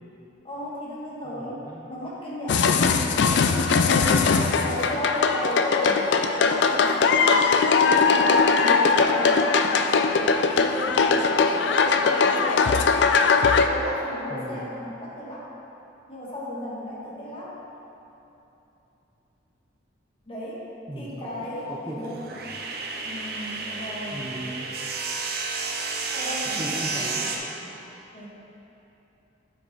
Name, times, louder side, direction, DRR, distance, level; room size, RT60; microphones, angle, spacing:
voice 1, 0.4-2.7 4.6-7.2 7.9-12.9 13.7-15.5 16.1-17.6 20.3-20.6 20.9-22.2 23.0-24.2 26.1-27.0 28.1-28.3, left 1 dB, 30° left, -6 dB, 1.5 m, -34 dB
voice 2, 1.2-1.8 2.6-3.0 3.9-4.3 14.3-14.7 20.9-21.3 21.7-22.5 23.9-24.7 26.6-27.8, right 1 dB, 20° right, -4 dB, 0.6 m, -38 dB
sound 1, 2.5-13.7, left 5 dB, 65° left, 0.4 m, -20 dB
sound 2, 21.6-27.4, right 4 dB, 55° right, 0.7 m, -31 dB
8.6 x 5.1 x 4.0 m, 3.0 s
head